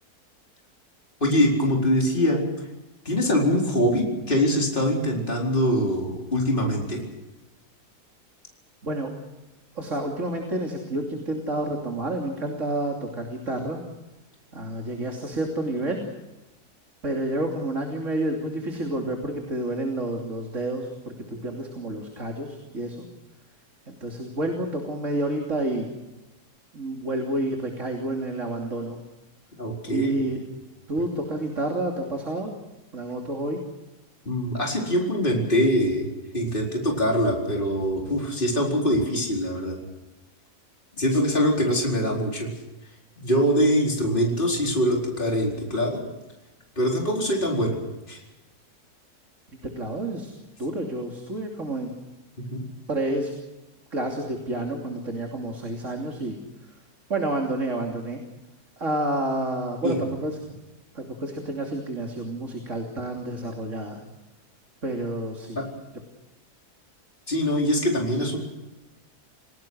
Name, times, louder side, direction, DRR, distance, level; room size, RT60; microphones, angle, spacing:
voice 1, 1.2-2.4 3.0-7.0 29.6-30.1 34.2-36.0 36.3-39.8 41.0-42.5 43.2-46.0 46.8-47.8 48.1-48.2 52.5-52.6 59.8-60.0 65.6-65.7 67.3-68.4, equal, 30° left, -1 dB, 4.7 m, -23 dB
voice 2, 9.7-13.8 14.5-16.0 17.0-23.0 23.9-25.9 26.7-29.0 29.9-30.4 30.9-32.5 32.9-33.6 49.8-50.3 50.6-51.9 52.9-53.3 53.9-56.7 57.1-58.2 58.8-60.4 60.9-64.0 64.8-65.6, right 1 dB, 50° right, 2 dB, 3.4 m, -29 dB
29.5 x 19.0 x 6.4 m, 1.1 s
omnidirectional pair, 1.7 m